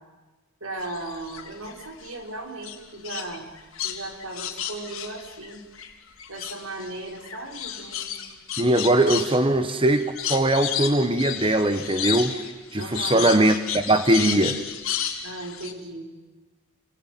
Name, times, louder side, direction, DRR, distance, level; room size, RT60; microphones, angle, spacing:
voice 1, 0.6-3.5 3.8-5.6 6.3-8.3 12.8-13.3 15.2-16.1, right 2 dB, 90° right, 3 dB, 5.1 m, -37 dB
sound 1, 0.8-2.1 2.6-5.9 6.2-15.7, left 9 dB, 75° left, 3.5 m, -32 dB
voice 2, 8.6-12.3 12.7-14.6, right 1 dB, 25° right, 9 dB, 1.3 m, -21 dB
29.0 x 21.5 x 9.3 m, 1.3 s
head